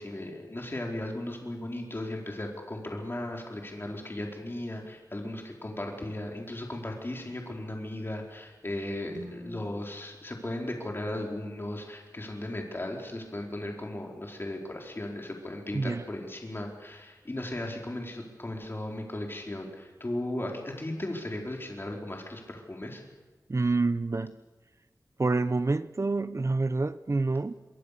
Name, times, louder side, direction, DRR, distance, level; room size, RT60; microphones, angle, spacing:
voice 1, 0.0-23.0, left 1 dB, 35° left, 4.5 m, -36 dB
sound 1, 9.1-13.2, right 1 dB, 90° right, 7.5 m, -51 dB
voice 2, 23.5-24.4 25.2-27.5, right 3 dB, 45° right, 0.7 m, -27 dB
26.0 x 24.0 x 6.8 m
wide cardioid pair, 80°, 7 cm